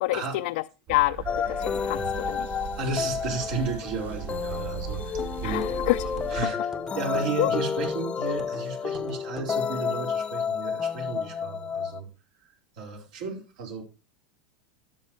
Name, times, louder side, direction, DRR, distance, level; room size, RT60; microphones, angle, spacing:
voice 1, 0.0-0.5 0.9-2.0 2.3-2.5 5.4-6.0 7.4-7.5, left 19 dB, 70° left, 8 dB, 0.5 m, -27 dB
sound 1, 0.9-6.4, right 9 dB, 35° right, 0.6 m, -38 dB
sound 2, 1.3-12.0, left 7 dB, 25° left, 0.7 m, -31 dB
voice 2, 2.8-5.7 6.3-12.1 12.7-13.8, right 4 dB, 70° right, 0 dB, 4.7 m, -33 dB
sound 3, 3.0-9.6, right 2 dB, 10° right, 1.0 m, -45 dB
12.5 x 10.0 x 3.2 m, 0.31 s
supercardioid pair, 120°, 5 cm